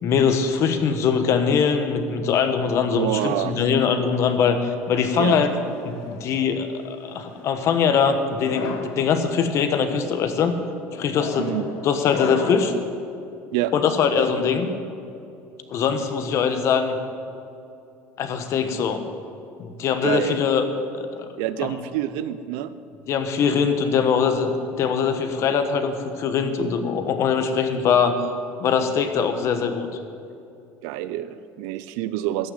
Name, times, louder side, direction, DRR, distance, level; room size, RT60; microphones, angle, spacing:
voice 1, 0.0-5.5 5.8-10.6 10.9-11.5 11.8-12.7 13.7-14.7 15.7-17.0 18.2-19.0 19.6-20.6 21.0-21.3 21.6-21.8 23.1-28.2 28.6-29.9, left 6 dB, 55° left, 8 dB, 1.3 m, -22 dB
voice 2, 2.9-3.6 5.2-5.4 11.4-11.7 13.5-13.7 20.0-20.4 21.4-22.7 30.8-32.5, right 13 dB, 85° right, 13 dB, 0.6 m, -27 dB
sound 1, 4.9-6.3 7.1-7.5 8.3-9.0 9.6-10.0 10.9-12.8, left 5 dB, 75° left, 1.4 m, -35 dB
14.0 x 6.4 x 9.8 m, 2.5 s
cardioid pair, 115°, 6 cm